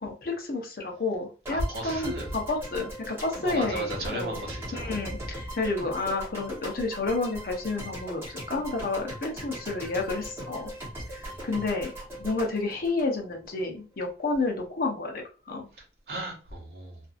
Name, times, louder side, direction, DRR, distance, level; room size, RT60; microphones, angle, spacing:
voice 1, 0.0-4.4 4.7-10.7 11.1-11.9 12.2-15.7, left 3 dB, 55° left, 0.7 m, -30 dB
sound 1, 1.4-13.6, right 1 dB, 15° right, 1.0 m, -39 dB
voice 2, 1.5-2.4 3.4-5.0 11.2-11.5 15.7-17.0, right 1 dB, 65° right, 1.0 m, -35 dB
2.6 x 2.5 x 2.4 m
head